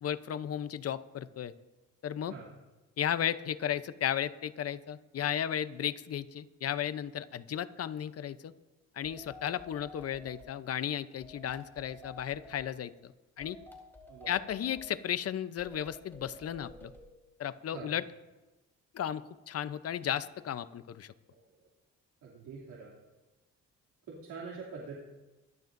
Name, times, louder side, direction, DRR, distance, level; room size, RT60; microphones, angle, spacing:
voice 1, 0.0-1.5 2.0-2.3 3.0-8.5 9.0-13.1 13.4-13.6 14.3-16.9 17.4-18.0 18.9-21.1, left 10 dB, 55° left, 13 dB, 0.7 m, -34 dB
sound 1, 9.0-10.6 11.2-12.7 13.4-14.9 15.6-17.1, left 1 dB, 5° left, 3.4 m, -52 dB
voice 2, 14.1-14.4 17.7-17.9 21.3-21.4 22.2-22.9 24.1-24.9, right 5 dB, 90° right, -4 dB, 2.8 m, -44 dB
25.5 x 12.0 x 2.6 m, 1.1 s
cardioid pair, 90°, 30 cm